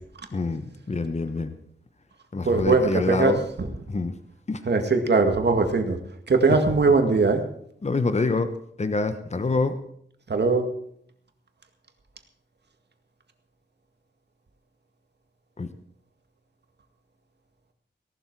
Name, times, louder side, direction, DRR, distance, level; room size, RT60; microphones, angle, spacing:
voice 1, 0.3-1.5 2.3-3.5 3.9-4.1 4.5-4.6 7.8-8.5 8.8-9.8 15.6-15.7, left 3 dB, 35° left, 10 dB, 1.0 m, -26 dB
voice 2, 2.5-3.3 4.7-6.0 6.3-7.4 10.3-10.6, right 3 dB, 60° right, 6 dB, 2.0 m, -20 dB
17.5 x 12.0 x 4.8 m, 0.67 s
wide cardioid pair, 115°, 19 cm